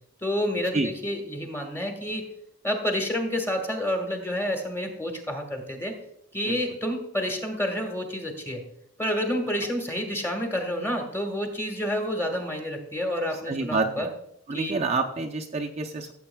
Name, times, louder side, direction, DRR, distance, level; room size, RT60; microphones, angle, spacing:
voice 1, 0.2-2.3 2.6-5.9 6.3-8.6 9.0-14.1 14.5-14.7, equal, 10° left, 4 dB, 1.4 m, -29 dB
voice 2, 13.3-14.1 14.5-16.1, right 3 dB, 35° right, 1 dB, 0.5 m, -28 dB
14.0 x 7.7 x 2.2 m, 0.75 s
head